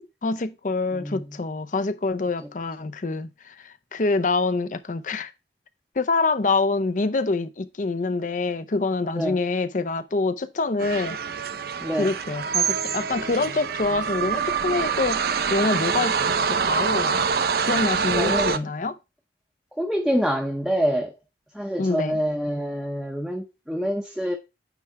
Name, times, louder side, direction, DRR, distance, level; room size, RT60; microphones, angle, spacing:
voice 1, 0.0-5.3 6.0-11.2 12.0-17.2 17.6-19.0 21.8-22.2, left 3 dB, 45° left, 0.6 m, -26 dB
sound 1, 10.8-18.6, right 5 dB, 60° right, 0.5 m, -25 dB
voice 2, 11.8-12.1 18.1-18.7 19.8-21.1 21.5-24.4, equal, ahead, 0.7 m, -26 dB
9.1 x 3.4 x 4.6 m
head